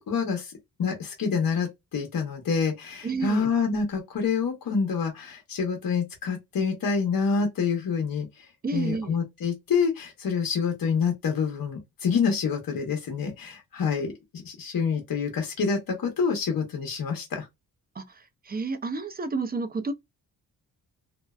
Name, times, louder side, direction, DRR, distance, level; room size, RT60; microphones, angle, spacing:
voice 1, 0.1-8.3 8.7-14.1 14.4-17.5, left 5 dB, 60° left, 1.0 m, -27 dB
voice 2, 3.0-3.5 8.6-9.2 18.0-19.9, right 3 dB, 25° right, 0.5 m, -30 dB
2.6 x 2.0 x 2.3 m
cardioid pair, 65°, 38 cm